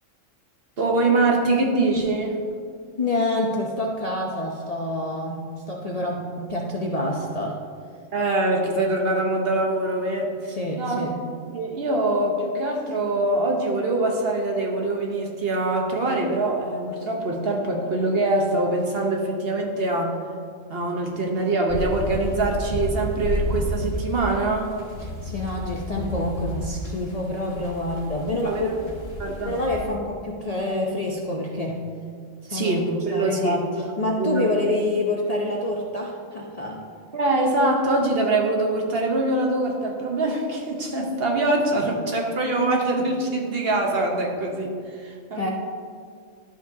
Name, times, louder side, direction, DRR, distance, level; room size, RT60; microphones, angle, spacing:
voice 1, 0.8-2.4 8.1-10.3 10.8-11.0 11.5-20.2 20.7-24.7 28.4-28.8 29.2-29.6 32.5-33.6 34.2-34.5 37.1-45.5, right 2 dB, 50° right, 1 dB, 1.1 m, -24 dB
voice 2, 3.0-7.6 10.5-11.2 25.0-29.0 29.4-31.9 32.5-36.8 45.4-45.5, left 1 dB, 40° left, -2 dB, 0.6 m, -27 dB
sound 1, 21.7-29.9, left 1 dB, 70° left, 1.6 m, -32 dB
11.5 x 7.1 x 2.7 m, 2.1 s
omnidirectional pair, 1.3 m